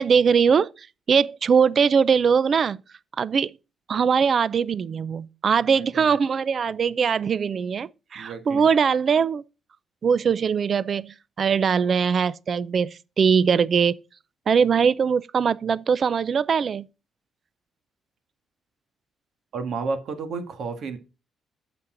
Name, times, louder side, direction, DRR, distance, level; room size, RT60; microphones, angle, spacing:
voice 1, 0.0-2.8 3.2-3.5 3.9-9.4 10.0-14.0 14.5-16.9, right 6 dB, 40° right, 0.4 m, -21 dB
voice 2, 8.2-8.7 19.5-21.0, right 4 dB, 60° right, 1.8 m, -31 dB
8.5 x 6.9 x 3.8 m
cardioid pair, 145°, 0 cm